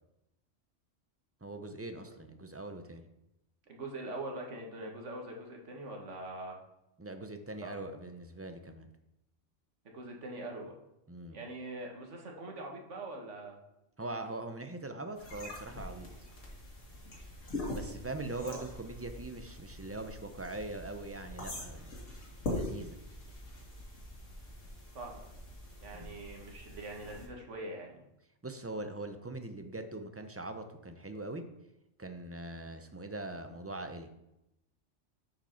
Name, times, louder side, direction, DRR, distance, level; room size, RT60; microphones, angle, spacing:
voice 1, 1.4-3.0 7.0-8.9 11.1-11.4 14.0-16.1 17.7-21.9 22.5-23.0 25.9-26.2 28.4-31.5 32.0-34.1, right 2 dB, 20° right, 7 dB, 0.4 m, -42 dB
voice 2, 3.7-6.6 7.6-7.8 9.9-10.7 11.3-13.6 18.4-18.6 24.9-25.3 25.8-28.0, right 2 dB, 75° right, 1 dB, 1.7 m, -43 dB
sound 1, 15.2-27.3, left 1 dB, 85° left, 2.4 m, -43 dB
7.1 x 5.3 x 5.6 m, 0.87 s
omnidirectional pair, 1.3 m